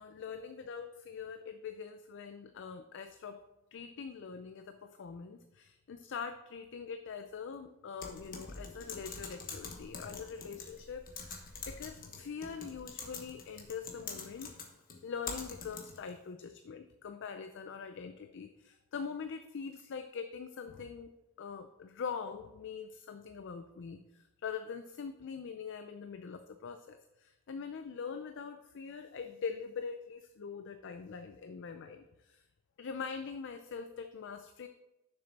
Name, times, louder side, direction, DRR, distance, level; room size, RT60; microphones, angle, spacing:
voice 1, 0.0-3.4 3.7-14.5 15.0-21.1 21.4-32.4 32.8-34.7, left 6 dB, 60° left, 8 dB, 0.4 m, -43 dB
Typing, 8.0-16.1, left 4 dB, 40° left, 1.2 m, -45 dB
6.9 x 6.7 x 4.1 m, 0.96 s
head